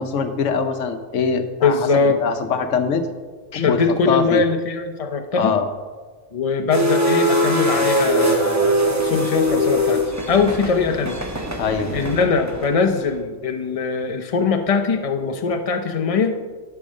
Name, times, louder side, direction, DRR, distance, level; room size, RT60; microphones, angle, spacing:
voice 1, 0.0-3.1 3.5-3.8 4.1-4.4 5.4-5.7 11.6-12.1, left 5 dB, 70° left, 8 dB, 1.2 m, -23 dB
voice 2, 1.6-2.2 3.5-5.6 6.3-11.2 11.9-16.4, left 4 dB, 35° left, 6 dB, 0.7 m, -21 dB
sound 1, 6.7-13.0, equal, 15° right, 0.9 m, -21 dB
12.0 x 4.7 x 6.4 m, 1.4 s
omnidirectional pair, 1.4 m